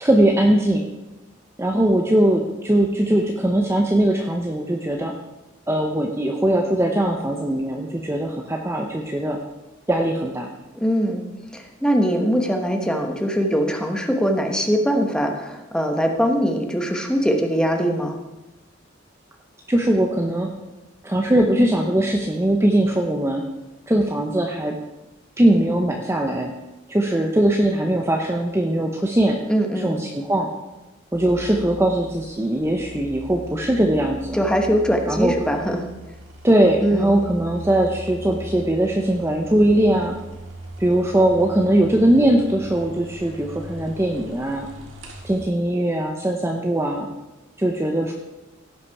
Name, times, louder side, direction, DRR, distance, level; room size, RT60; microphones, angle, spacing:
voice 1, 0.0-0.8 1.6-5.1 5.7-9.4 9.9-10.5 19.7-20.5 21.0-23.4 23.9-24.8 25.4-26.5 26.9-29.4 29.8-30.5 31.1-34.4 35.1-35.3 36.4-40.1 40.8-44.7 45.2-47.1 47.6-48.1, right 1 dB, 15° right, 1 dB, 0.8 m, -20 dB
voice 2, 10.7-11.2 11.5-18.2 29.5-29.9 34.3-35.8 36.8-37.2, equal, 5° left, 3 dB, 1.1 m, -21 dB
sound 1, 31.1-45.5, equal, 85° right, 1.7 m, -40 dB
16.5 x 5.9 x 4.7 m, 1.0 s
head